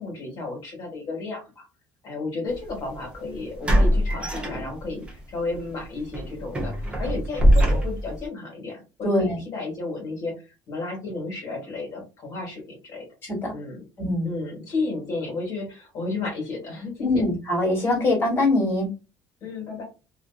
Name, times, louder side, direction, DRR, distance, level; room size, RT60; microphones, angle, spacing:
voice 1, 0.0-1.7 2.0-13.1 13.5-13.8 14.2-17.2 19.4-19.8, left 3 dB, 50° left, 0 dB, 1.3 m, -33 dB
sound 1, 2.5-2.7 3.6-5.1 5.5-5.7 6.1-8.2, equal, 15° right, 0.6 m, -22 dB
voice 2, 9.0-9.4 13.3-13.5 14.0-14.3 17.0-18.9, left 2 dB, 30° left, -1 dB, 1.5 m, -23 dB
2.5 x 2.5 x 2.3 m, 0.30 s
cardioid pair, 145°, 8 cm